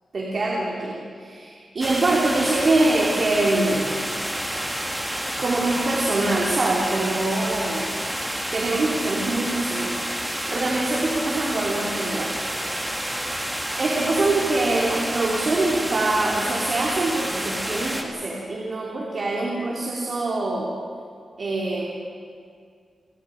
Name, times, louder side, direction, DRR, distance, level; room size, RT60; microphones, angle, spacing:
voice 1, 0.1-4.0 5.4-7.9 8.5-10.0 10.2-12.3 13.8-20.7 21.4-21.8, right 2 dB, 45° right, -3 dB, 2.9 m, -24 dB
sound 1, 1.8-18.0, right 1 dB, 5° right, 1.9 m, -29 dB
29.0 x 20.0 x 5.1 m, 2.2 s
wide cardioid pair, 170°, 0 cm